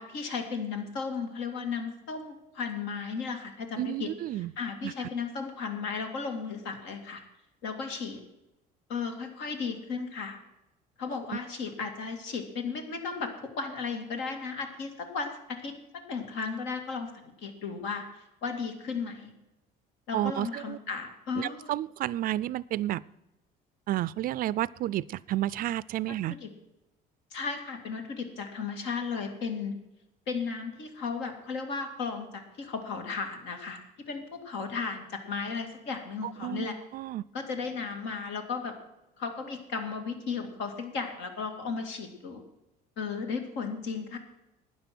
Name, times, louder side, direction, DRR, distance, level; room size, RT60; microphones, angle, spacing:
voice 1, 0.0-4.1 4.4-7.2 7.6-8.2 8.9-10.4 11.0-13.3 13.6-15.7 16.1-18.0 18.4-19.3 20.1-21.7 26.1-26.5 27.3-29.7 30.3-33.8 34.1-36.8 37.3-38.7 39.2-42.4 43.0-44.2, left 5 dB, 80° left, 5 dB, 2.5 m, -35 dB
voice 2, 3.8-4.5 4.8-5.1 20.1-20.8 21.4-23.0 23.9-26.4 36.2-36.7 36.9-37.3, right 14 dB, 50° right, 21 dB, 0.4 m, -31 dB
12.5 x 9.6 x 6.2 m, 0.94 s
cardioid pair, 125°, 19 cm